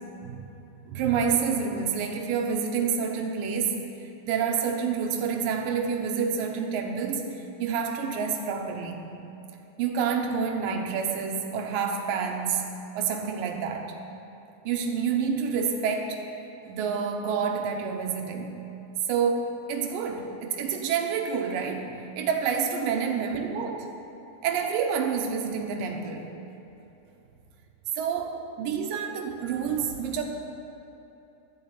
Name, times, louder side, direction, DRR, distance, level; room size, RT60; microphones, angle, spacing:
voice 1, 0.9-9.1 9.8-13.9 14.6-16.2 16.7-18.6 19.1-23.9 24.4-26.3 27.9-30.2, right 6 dB, 70° right, 2 dB, 2.2 m, -28 dB
12.5 x 7.2 x 8.8 m, 3.0 s
omnidirectional pair, 5.0 m